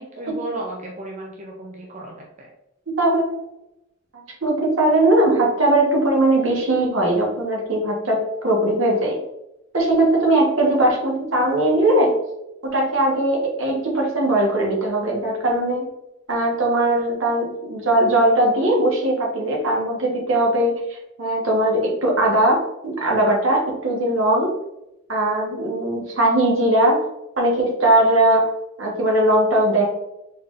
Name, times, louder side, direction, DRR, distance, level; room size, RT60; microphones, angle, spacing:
voice 1, 0.0-2.5, right 2 dB, 35° right, -1 dB, 0.6 m, -34 dB
voice 2, 3.0-3.4 4.4-9.2 9.7-12.1 12.6-15.8 16.3-24.5 25.1-27.0 27.4-28.5 28.8-29.8, right 1 dB, 70° right, -1 dB, 1.2 m, -19 dB
4.2 x 3.7 x 2.5 m, 0.87 s
head